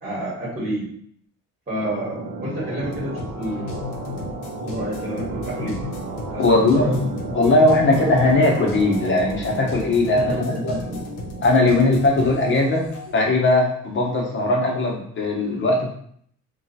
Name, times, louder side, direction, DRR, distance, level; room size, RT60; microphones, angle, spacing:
voice 1, 0.0-0.8 1.7-3.9 4.6-5.8 6.3-7.0 10.1-11.0, equal, 30° right, -6 dB, 1.3 m, -29 dB
sound 1, 1.8-12.1, right 3 dB, 60° right, 0.7 m, -33 dB
sound 2, 2.8-13.1, left 4 dB, 85° left, 0.6 m, -36 dB
voice 2, 6.4-7.0 7.3-10.7 11.4-12.9 13.1-15.9, left 2 dB, 40° left, -1 dB, 0.9 m, -19 dB
2.9 x 2.4 x 2.7 m, 0.64 s
cardioid pair, 90°, 30 cm